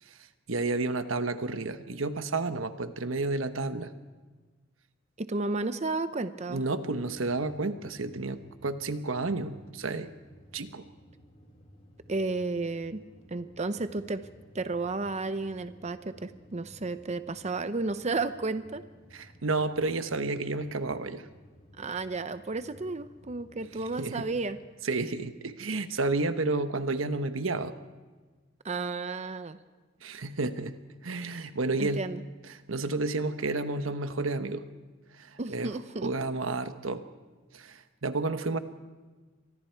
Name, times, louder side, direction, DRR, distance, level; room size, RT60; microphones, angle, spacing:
voice 1, 0.5-3.9 6.5-10.1 10.5-10.8 19.1-21.3 24.0-24.3 24.8-27.7 30.0-30.7 31.0-32.0 32.5-34.6 35.2-35.7 36.0-37.0 37.5-38.6, right 3 dB, 75° right, 10 dB, 1.1 m, -31 dB
voice 2, 5.2-6.6 12.1-13.0 13.3-14.3 14.5-18.8 21.8-24.6 28.6-29.6 31.8-32.2 35.4-36.1, right 3 dB, 35° right, 12 dB, 0.7 m, -32 dB
sound 1, 6.9-24.4, equal, 35° left, 6.2 m, -56 dB
29.5 x 24.5 x 4.6 m, 1.3 s
head